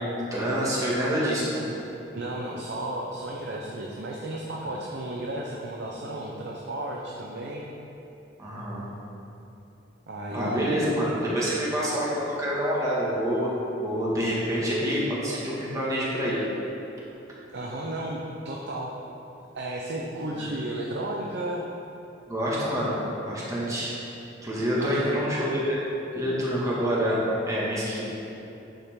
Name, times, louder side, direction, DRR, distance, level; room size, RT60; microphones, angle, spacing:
voice 1, 0.0-1.6 8.4-8.8 10.3-16.4 20.3-20.4 22.3-22.9 23.2-23.9 24.4-25.8 26.2-28.1, equal, 15° right, -7 dB, 2.1 m, -27 dB
voice 2, 2.1-7.7 10.1-10.8 17.5-18.9 19.5-21.6 24.8-25.1, right 1 dB, 60° right, -2 dB, 0.8 m, -33 dB
10.0 x 7.0 x 3.8 m, 2.9 s
head